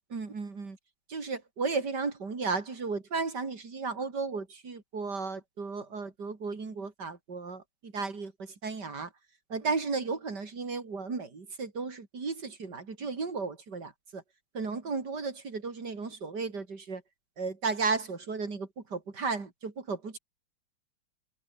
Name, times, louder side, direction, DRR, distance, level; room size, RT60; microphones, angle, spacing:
voice 1, 0.1-0.8 1.1-9.1 9.5-14.2 14.5-17.0 17.4-20.2, right 4 dB, 55° right, 3.8 m, -34 dB
omnidirectional pair, 2.2 m